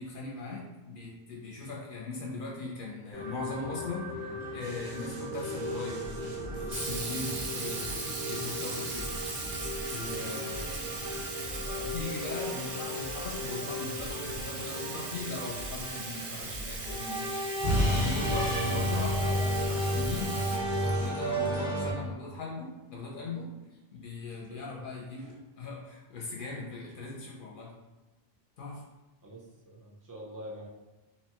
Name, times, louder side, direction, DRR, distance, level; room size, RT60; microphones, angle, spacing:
voice 1, 0.0-7.9 8.3-9.1 9.9-10.8 11.8-23.5 23.9-27.8 28.6-28.8, left 3 dB, 60° left, -3 dB, 0.7 m, -40 dB
Arctic Orchestral Cue, 3.1-21.9, equal, 20° left, 0.8 m, -33 dB
sound 1, 4.6-21.1, equal, 90° right, 0.9 m, -46 dB
Sink (filling or washing), 6.7-21.5, right 3 dB, 65° right, 0.7 m, -39 dB
voice 2, 10.0-10.4 24.4-24.8 25.2-25.3 29.2-30.7, right 1 dB, 35° right, -3 dB, 0.3 m, -46 dB
2.7 x 2.1 x 2.8 m, 1.1 s
omnidirectional pair, 1.0 m